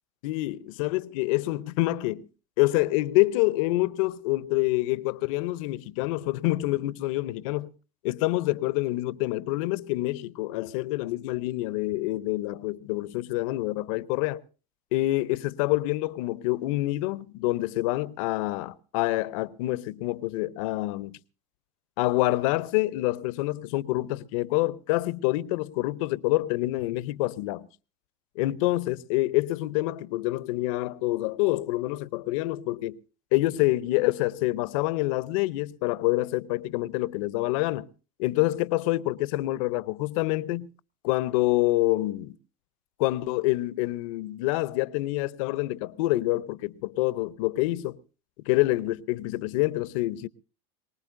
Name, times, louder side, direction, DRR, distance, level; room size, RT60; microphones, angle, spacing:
voice 1, 0.2-2.3 2.6-7.7 8.0-14.4 14.9-21.2 22.0-27.7 28.4-33.0 33.3-37.9 38.2-40.7 41.0-42.4 43.0-48.0 48.4-50.3, left 18 dB, 70° left, 0.7 m, -27 dB
23.5 x 19.5 x 2.6 m
hypercardioid pair, 95°, 18 cm